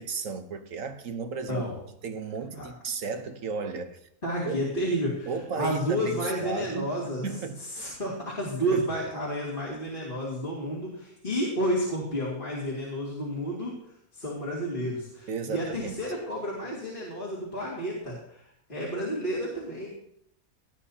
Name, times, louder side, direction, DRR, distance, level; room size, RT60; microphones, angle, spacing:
voice 1, 0.0-1.6 2.0-4.0 4.4-4.7 5.3-7.9 8.7-8.8 15.3-16.0, right 5 dB, 65° right, 1.4 m, -34 dB
voice 2, 4.2-5.3 5.5-7.3 7.7-13.7 14.1-18.4 18.7-19.9, equal, 35° left, 3.0 m, -31 dB
18.0 x 10.5 x 2.9 m
omnidirectional pair, 1.5 m